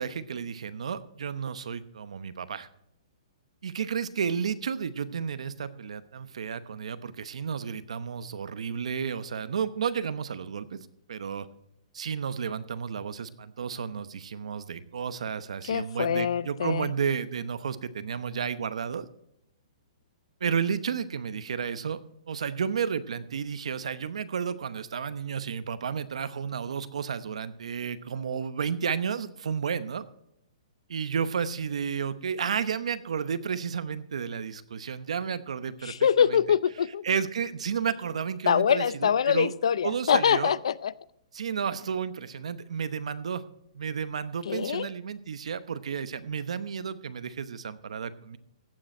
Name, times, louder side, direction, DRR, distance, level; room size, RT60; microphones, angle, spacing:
voice 1, 0.0-2.7 3.6-10.8 11.1-11.5 11.9-19.1 20.4-22.0 22.3-30.1 30.9-35.9 36.3-36.4 37.0-39.5 39.8-40.6 41.3-43.4 43.7-48.4, right 7 dB, 65° right, 13 dB, 0.9 m, -32 dB
voice 2, 15.7-16.9 35.8-37.0 38.5-40.9 44.5-44.9, left 8 dB, 55° left, 20 dB, 0.5 m, -24 dB
15.0 x 9.2 x 4.4 m, 0.78 s
hypercardioid pair, 180°, 4 cm